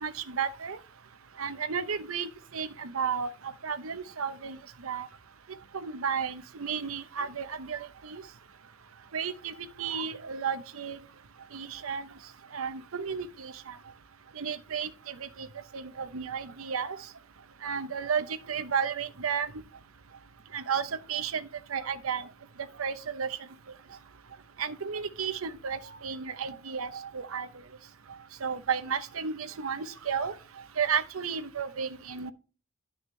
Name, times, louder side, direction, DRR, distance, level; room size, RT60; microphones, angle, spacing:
voice 1, 0.0-0.8 1.4-3.3 3.6-4.6 4.8-5.1 5.7-8.2 9.1-9.5 9.8-11.0 11.5-12.1 12.5-13.7 14.4-15.3 15.7-17.0 17.6-19.5 20.5-22.2 22.8-23.3 24.6-27.5 28.4-30.3 30.8-32.3, right 6 dB, 80° right, 0.8 m, -33 dB
11.5 x 6.4 x 3.2 m
head